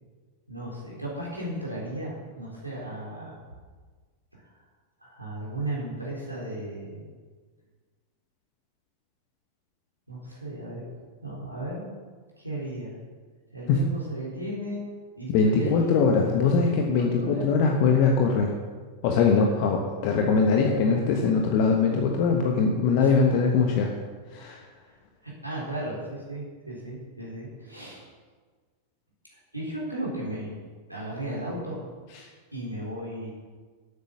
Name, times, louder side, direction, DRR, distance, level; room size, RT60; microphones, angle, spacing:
voice 1, 0.5-3.4 4.3-4.6 5.0-7.1 10.1-10.8 11.2-11.9 12.4-13.0 13.5-14.9 15.2-16.1 16.6-17.5 19.3-19.6 23.0-23.2 25.2-28.0 29.3-30.5 30.9-31.9 32.5-33.3, right 1 dB, 85° right, -5 dB, 3.8 m, -35 dB
voice 2, 15.3-18.5 19.0-23.9 24.3-24.6, left 5 dB, 45° left, 2 dB, 1.3 m, -22 dB
12.5 x 8.4 x 6.6 m, 1.5 s
figure-of-eight pair, 90°, 0 cm